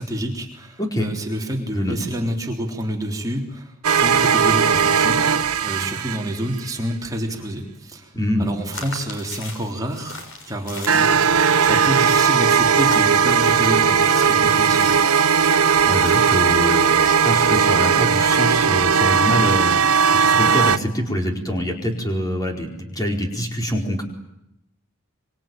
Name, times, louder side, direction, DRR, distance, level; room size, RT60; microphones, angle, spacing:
voice 1, 0.0-8.1 8.4-11.1 11.6-14.9, equal, 15° right, 1 dB, 3.7 m, -28 dB
voice 2, 0.8-1.1 1.7-2.0 8.1-8.5 15.8-19.8 20.1-24.0, equal, 15° left, 3 dB, 4.7 m, -25 dB
sound 1, 3.8-6.6 10.9-20.8, right 6 dB, 90° right, 1.1 m, -17 dB
sound 2, 8.7-16.5, left 2 dB, 65° left, 6.5 m, -39 dB
25.5 x 25.0 x 9.2 m, 0.84 s
head